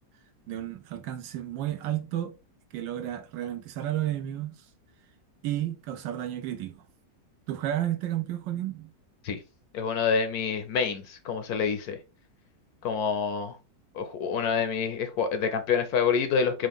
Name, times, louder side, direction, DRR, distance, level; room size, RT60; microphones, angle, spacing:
voice 1, 0.5-2.3 2.7-4.5 5.4-6.7 7.5-8.9, right 12 dB, 90° right, 1.4 m, -32 dB
voice 2, 9.7-12.0 12.8-13.5 13.9-16.7, left 6 dB, 70° left, 1.0 m, -27 dB
4.9 x 2.1 x 3.5 m
omnidirectional pair, 1.9 m